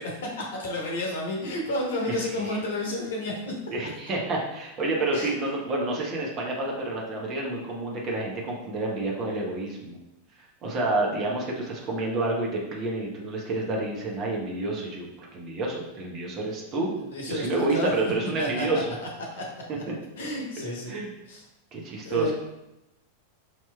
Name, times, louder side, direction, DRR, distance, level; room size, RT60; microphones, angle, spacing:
voice 1, 0.0-3.5 5.1-5.3 17.0-17.9 18.4-19.5 20.2-20.9 21.3-21.4 22.0-22.3, left 1 dB, 60° left, -1 dB, 0.9 m, -31 dB
voice 2, 2.1-2.6 3.7-10.0 10.4-16.9 17.3-18.9 20.9-21.1 21.7-22.3, right 2 dB, 30° right, -2 dB, 0.9 m, -29 dB
5.7 x 2.9 x 2.2 m, 0.91 s
figure-of-eight pair, 90°, 0 cm